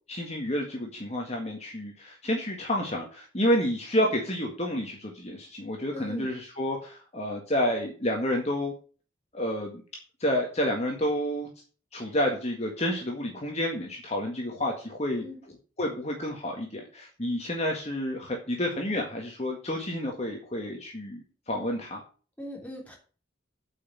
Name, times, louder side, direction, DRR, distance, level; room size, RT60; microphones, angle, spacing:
voice 1, 0.1-8.7 9.3-9.8 10.2-11.5 11.9-22.0, equal, 35° left, 1 dB, 1.8 m, -30 dB
voice 2, 5.9-6.3 15.2-15.4 22.4-23.0, equal, 5° left, -1 dB, 3.5 m, -39 dB
8.3 x 5.7 x 7.4 m, 0.38 s
head